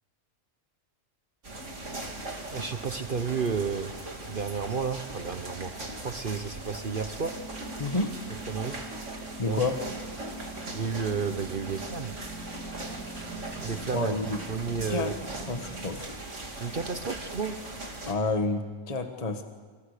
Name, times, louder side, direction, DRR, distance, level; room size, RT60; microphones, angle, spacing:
sound 1, 1.4-18.1, right 2 dB, 85° right, 3.3 m, -40 dB
voice 1, 2.5-3.9 4.3-5.7 6.0-7.4 8.5-8.8 9.5-9.6 10.7-12.2 13.5-14.1 14.5-15.1 16.6-17.6, right 5 dB, 50° right, 9 dB, 1.0 m, -32 dB
sound 2, 7.2-16.0, right 2 dB, 10° left, 3.5 m, -44 dB
voice 2, 7.8-8.1 9.4-9.8 13.9-14.4 14.9-15.1 15.5-16.1 18.1-19.4, left 3 dB, 30° left, 6 dB, 1.5 m, -29 dB
28.5 x 26.5 x 6.7 m, 1.5 s
omnidirectional pair, 1.2 m